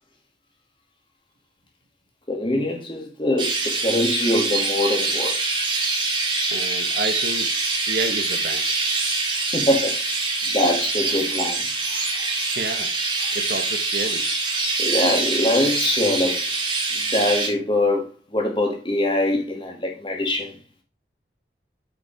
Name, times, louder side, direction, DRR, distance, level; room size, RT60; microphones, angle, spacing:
voice 1, 2.3-5.3 9.5-10.2 10.5-11.6 14.8-16.4 16.9-18.1 18.3-20.6, left 1 dB, 25° left, 2.0 m, -23 dB
Chirp tweet, 3.4-17.5, right 3 dB, 25° right, 2.3 m, -24 dB
voice 2, 6.5-7.5 7.9-8.6 12.3-12.9 13.3-14.3, right 2 dB, 55° right, 1.2 m, -30 dB
7.9 x 5.2 x 4.7 m
head